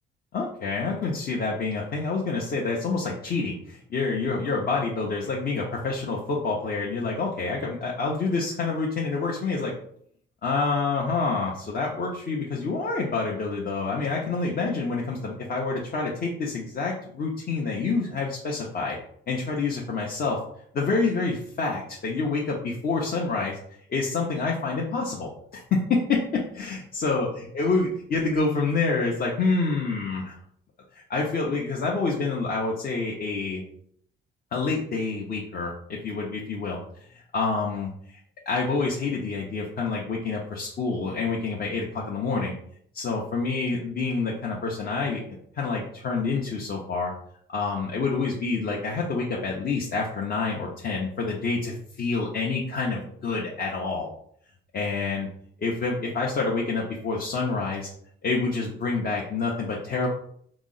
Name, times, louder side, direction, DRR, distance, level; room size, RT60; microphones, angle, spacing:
voice 1, 0.3-9.7 10.4-19.0 19.3-20.4 20.7-23.6 23.9-27.3 27.5-30.4 30.9-33.6 34.5-35.7 36.0-36.8 37.3-38.2 38.5-42.6 42.9-45.2 45.6-47.1 47.5-54.1 54.7-55.3 55.6-57.9 58.2-60.1, left 4 dB, 50° left, -2 dB, 0.7 m, -27 dB
3.9 x 2.0 x 3.8 m, 0.66 s
cardioid pair, 90°, 20 cm